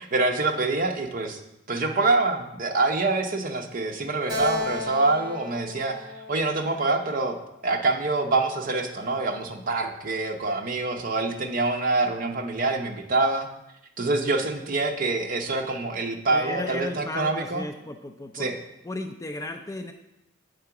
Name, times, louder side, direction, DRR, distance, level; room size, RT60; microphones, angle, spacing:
voice 1, 0.0-1.4 1.7-7.4 7.6-13.5 14.0-17.6 18.3-18.6, right 3 dB, 45° right, 3 dB, 0.8 m, -25 dB
Keyboard (musical), 4.3-7.7, left 3 dB, 25° right, 2.1 m, -34 dB
voice 2, 16.3-18.5 18.8-19.9, left 2 dB, 15° left, 6 dB, 0.4 m, -35 dB
8.3 x 3.8 x 5.9 m, 0.87 s
head